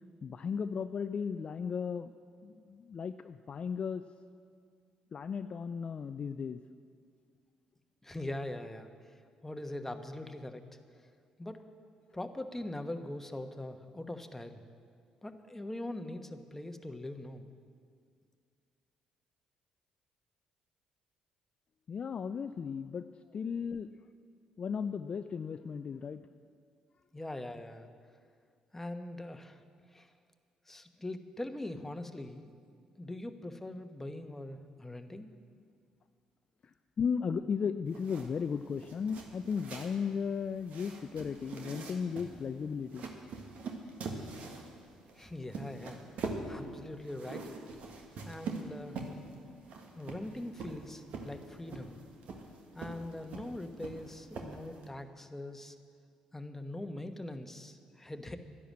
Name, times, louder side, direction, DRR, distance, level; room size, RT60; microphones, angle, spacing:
voice 1, 0.2-2.1 2.4-4.1 5.1-6.6 21.9-23.1 23.3-23.9 24.6-26.2 37.0-43.1, left 6 dB, 45° left, 10 dB, 0.4 m, -35 dB
voice 2, 8.0-8.9 9.4-10.6 11.4-11.6 12.1-14.6 15.2-17.5 27.1-27.9 28.7-29.6 29.9-30.1 30.7-32.5 33.0-35.3 45.1-46.0 46.5-47.5 48.2-49.0 49.9-52.0 52.7-55.7 56.3-58.4, left 1 dB, 10° left, 7 dB, 1.1 m, -42 dB
sound 1, 37.9-54.9, right 3 dB, 65° right, 1.6 m, -44 dB
11.5 x 10.5 x 7.5 m, 2.2 s
hypercardioid pair, 50°, 2 cm